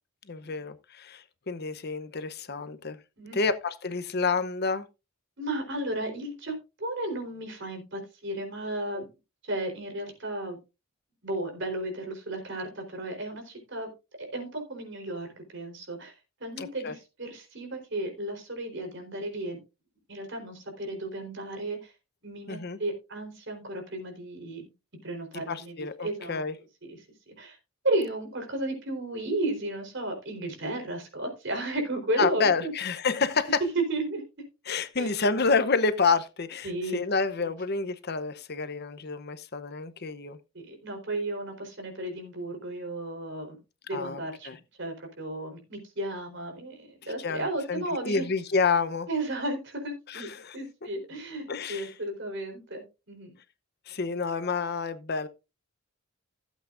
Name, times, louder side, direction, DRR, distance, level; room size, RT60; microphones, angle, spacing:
voice 1, 0.3-3.0 3.3-4.9 8.9-9.0 16.6-16.9 22.5-22.8 25.5-26.5 32.2-33.6 34.7-40.4 43.9-44.2 44.4-44.6 47.2-49.1 50.1-50.6 51.5-51.9 53.9-55.3, left 4 dB, 50° left, 0.9 m, -29 dB
voice 2, 5.4-9.1 9.4-10.6 11.2-13.9 14.2-16.1 16.4-19.6 20.1-21.9 22.2-24.7 25.0-26.4 26.8-27.0 27.3-27.6 27.8-32.7 33.6-34.2 35.0-35.1 36.6-37.0 37.4-37.5 40.5-43.6 43.9-48.3 49.1-50.3 50.5-53.3, right 2 dB, 55° right, 4.1 m, -34 dB
16.5 x 8.3 x 2.6 m
head